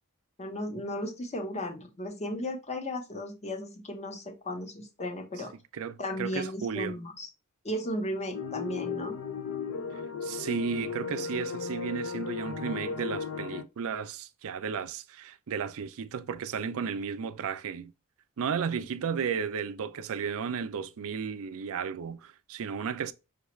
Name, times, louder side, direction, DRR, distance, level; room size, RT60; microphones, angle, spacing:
voice 1, 0.4-5.5 6.0-7.3 7.6-9.2, left 1 dB, 30° left, 0.9 m, -35 dB
voice 2, 5.7-7.0 9.9-17.9 18.4-23.1, right 6 dB, 65° right, 0.4 m, -34 dB
sound 1, 8.3-13.6, left 6 dB, 60° left, 0.5 m, -35 dB
5.8 x 2.3 x 3.0 m
head